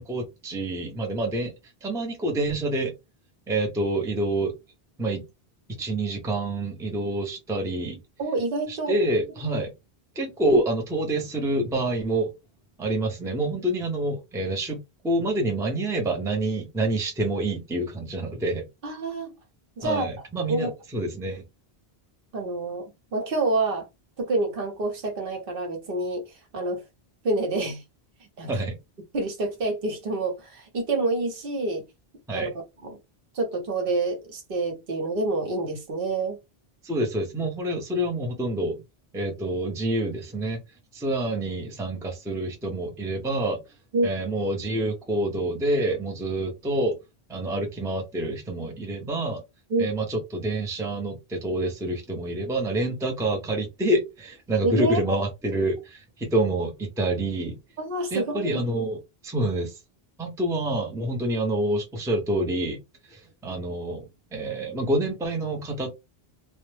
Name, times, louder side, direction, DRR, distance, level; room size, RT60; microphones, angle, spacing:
voice 1, 0.0-1.5 1.8-2.9 3.5-4.6 5.0-5.2 5.8-8.0 8.7-9.7 10.2-12.3 12.8-18.7 19.8-21.4 28.5-28.8 32.3-32.5 36.8-38.8 39.1-40.6 40.9-43.6 44.0-47.0 47.3-49.4 49.8-57.6 58.1-59.8 60.2-62.8 63.1-65.9, right 1 dB, 5° right, 0.4 m, -27 dB
voice 2, 8.2-9.0 18.8-19.3 19.8-20.1 20.5-20.7 22.3-23.9 24.2-26.8 27.2-27.8 28.4-28.6 29.1-31.8 32.3-32.5 32.8-33.0 33.3-36.4 43.9-44.1 49.7-49.9 54.6-55.2 57.8-58.6, right 2 dB, 65° right, 0.9 m, -27 dB
2.1 x 2.0 x 3.1 m
omnidirectional pair, 1.1 m